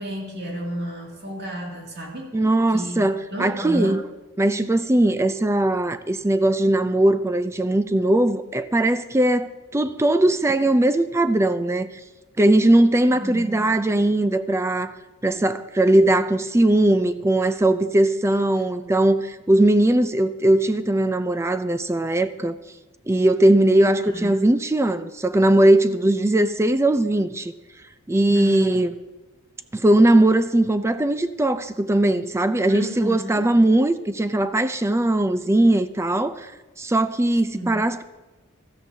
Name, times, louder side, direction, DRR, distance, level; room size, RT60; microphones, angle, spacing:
voice 1, 0.0-2.3 2.7-4.0 13.1-13.8 23.8-24.3 28.3-28.9 32.7-33.6 37.5-37.8, equal, 50° right, 2.4 m, -32 dB
voice 2, 2.3-4.0 4.4-11.9 12.4-15.0 15.2-22.6 23.1-27.5 28.1-28.9 29.7-36.5 36.8-38.0, right 1 dB, 15° right, 0.4 m, -19 dB
16.0 x 13.5 x 2.8 m
head